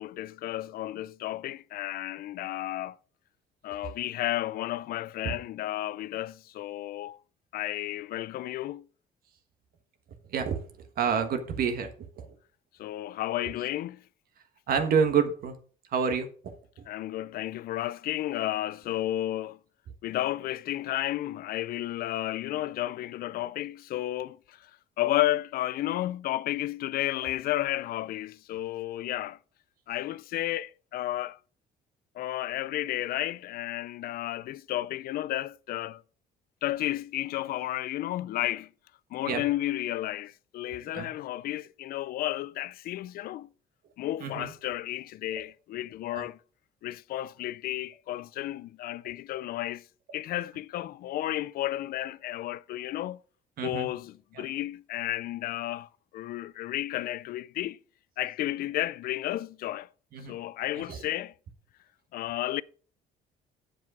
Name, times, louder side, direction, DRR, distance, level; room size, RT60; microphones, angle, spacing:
voice 1, 0.0-3.0 3.6-7.2 7.5-8.8 12.8-14.0 16.9-19.6 20.0-24.7 25.0-29.4 29.9-31.4 32.2-36.0 36.6-38.7 39.1-43.5 44.0-46.4 46.8-49.8 50.1-53.2 53.6-57.8 58.2-59.9 60.3-61.3 62.1-62.6, left 14 dB, 60° left, 0.4 m, -32 dB
voice 2, 11.0-11.9 12.2-12.3 14.7-15.5 15.9-16.3 39.3-39.4 40.9-41.1 44.2-44.5 46.1-46.2 53.6-53.9 54.4-54.5 60.1-60.4 60.9-61.0, right 6 dB, 60° right, 1.4 m, -27 dB
7.9 x 7.6 x 4.8 m
cardioid pair, 110°, 17 cm